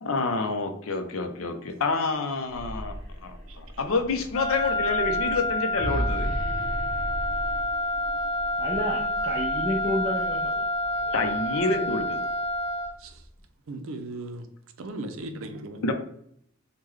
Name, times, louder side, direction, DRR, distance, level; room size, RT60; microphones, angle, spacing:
voice 1, 0.0-2.9 3.2-6.3 11.1-12.3 15.8-15.9, left 3 dB, 85° left, 6 dB, 0.5 m, -28 dB
sound 1, 2.4-10.5, equal, 40° right, 1.2 m, -36 dB
Wind instrument woodwind instrument, 4.3-13.0, left 1 dB, 35° left, 0.5 m, -28 dB
voice 2, 8.6-11.9, equal, 20° right, -3 dB, 0.4 m, -32 dB
voice 3, 13.7-14.5 14.8-15.8, right 2 dB, 80° right, 8 dB, 0.5 m, -37 dB
3.2 x 2.2 x 3.5 m, 0.68 s
head